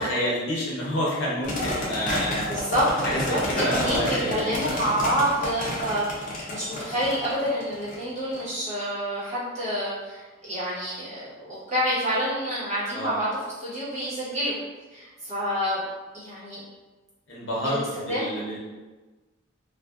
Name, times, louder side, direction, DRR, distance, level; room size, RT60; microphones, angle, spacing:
voice 1, 0.0-2.5 3.0-4.5 12.9-13.1 17.3-18.6, equal, 65° left, -6 dB, 0.9 m, -28 dB
sound 1, 1.4-8.4, left 1 dB, 40° left, 0.6 m, -30 dB
voice 2, 2.5-14.6 14.9-15.8 16.1-16.6 17.6-18.3, equal, 35° right, -11 dB, 1.2 m, -28 dB
2.5 x 2.5 x 2.4 m, 1.2 s
head